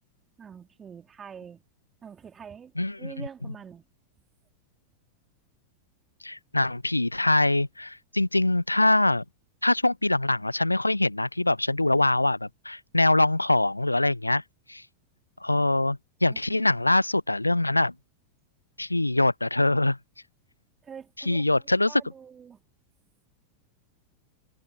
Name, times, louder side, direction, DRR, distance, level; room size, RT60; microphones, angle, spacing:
voice 1, 0.4-1.6 2.0-3.8 16.3-16.7 20.8-21.6 21.9-22.6, right 7 dB, 20° right, 3.6 m, -45 dB
voice 2, 2.8-3.3 6.2-9.2 9.6-14.4 14.7-14.8 15.4-17.9 18.8-20.0 21.3-22.0, left 2 dB, 85° left, 0.3 m, -23 dB
figure-of-eight pair, 90°, 0 cm